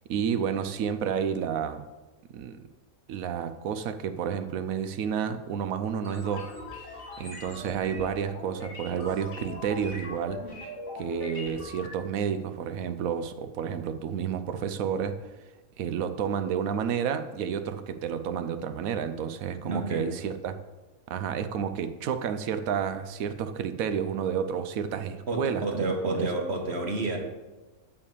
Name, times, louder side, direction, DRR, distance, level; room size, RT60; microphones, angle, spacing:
voice 1, 0.1-1.8 2.3-2.6 3.1-6.5 6.8-10.4 10.9-15.2 15.8-20.5 21.1-26.3, right 7 dB, 80° right, 10 dB, 1.1 m, -30 dB
sound 1, 6.0-11.9, left 2 dB, 55° left, 2.4 m, -41 dB
voice 2, 19.6-20.1 25.3-27.2, right 2 dB, 50° right, 2 dB, 1.5 m, -29 dB
9.6 x 4.8 x 6.9 m, 1.2 s
omnidirectional pair, 1.4 m